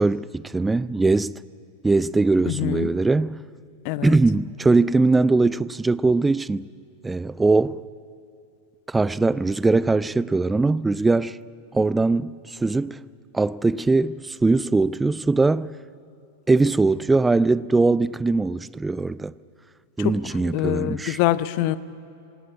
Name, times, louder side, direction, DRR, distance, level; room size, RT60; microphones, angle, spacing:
voice 1, 0.0-1.3 1.8-3.4 4.0-6.6 7.0-7.8 8.9-11.4 11.7-13.0 13.3-15.7 16.5-19.3 20.0-21.2, right 3 dB, 10° right, 0.4 m, -21 dB
voice 2, 2.5-2.9 3.8-4.2 20.0-20.1 20.4-21.8, left 15 dB, 45° left, 0.7 m, -24 dB
18.5 x 17.5 x 9.8 m
figure-of-eight pair, 90°, 0 cm